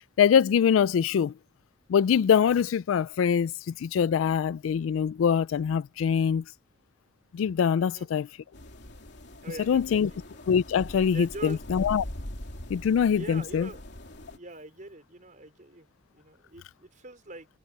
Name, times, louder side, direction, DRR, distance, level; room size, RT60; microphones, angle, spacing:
voice 1, 0.0-1.3 1.9-6.4 7.3-8.3 9.7-10.1 10.5-12.0 12.7-13.7, left 7 dB, 90° left, 0.3 m, -24 dB
voice 2, 7.8-8.1 9.4-10.2 11.0-11.6 13.1-13.8 14.1-15.9 16.1-17.5, right 2 dB, 40° right, 4.9 m, -43 dB
sound 1, 8.5-14.4, left 1 dB, 60° left, 3.1 m, -42 dB
head